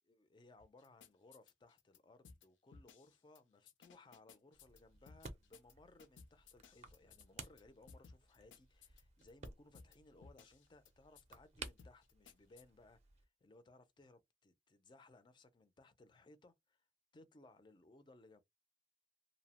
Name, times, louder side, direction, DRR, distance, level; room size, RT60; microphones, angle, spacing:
voice 1, 0.1-16.9 17.1-18.4, left 2 dB, 25° left, 0.4 m, -64 dB
sound 1, 0.6-2.0 2.2-2.5 2.7-3.4 3.7-4.8 5.1-5.7 6.0-7.6 7.9-9.5 9.7-10.0 10.2-10.9 11.2-11.4 11.6-12.6, left 5 dB, 80° left, 0.4 m, -60 dB
sound 2, 4.5-13.3, right 4 dB, 35° right, 0.5 m, -56 dB
2.7 x 2.0 x 2.8 m
head